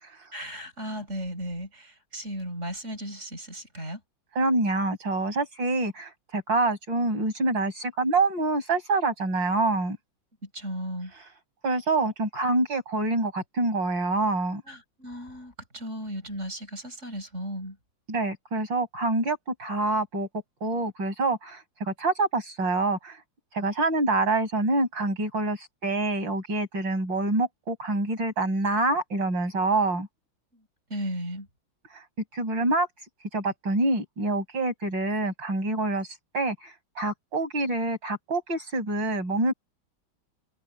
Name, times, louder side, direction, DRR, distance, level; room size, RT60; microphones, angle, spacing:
voice 1, 0.3-4.0 10.4-11.1 14.7-17.8 30.5-30.6 30.9-31.5, equal, 35° right, 7.5 m, -35 dB
voice 2, 4.4-10.0 11.6-14.6 18.1-20.3 20.6-23.2 23.5-30.1 31.9-32.0 32.3-32.9 33.3-39.5, right 2 dB, 65° right, 7.3 m, -26 dB
omnidirectional pair, 2.2 m